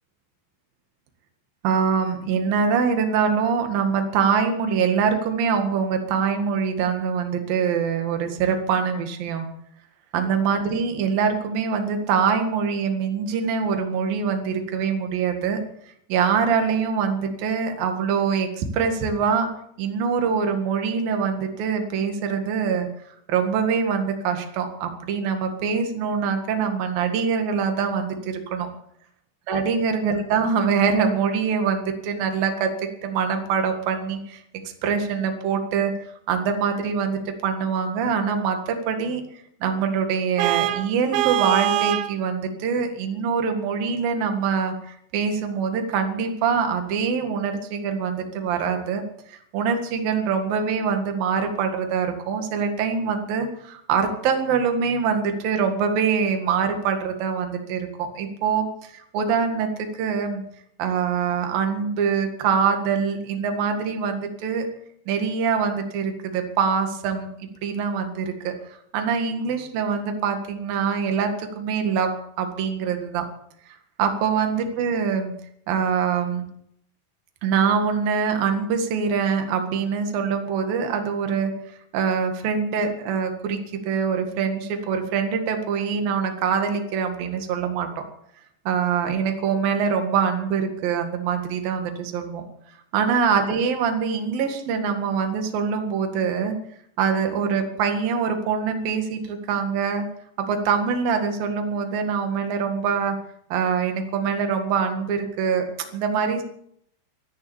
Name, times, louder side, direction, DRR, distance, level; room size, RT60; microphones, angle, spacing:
voice 1, 1.6-9.5 10.1-15.6 16.1-19.5 19.8-22.9 23.3-28.7 29.5-32.7 33.0-34.4 34.8-35.9 36.3-39.2 39.6-60.4 60.8-64.7 65.1-68.5 68.9-73.3 74.0-75.3 75.7-76.5 77.4-81.5 81.9-88.0 88.6-92.4 92.9-96.5 97.0-100.1 100.4-103.2 103.5-106.4, right 6 dB, 60° right, 6 dB, 3.3 m, -24 dB
Vehicle horn car horn honking, 40.4-42.2, right 14 dB, 80° right, 2.9 m, -23 dB
14.0 x 13.5 x 7.2 m, 0.71 s
omnidirectional pair, 5.3 m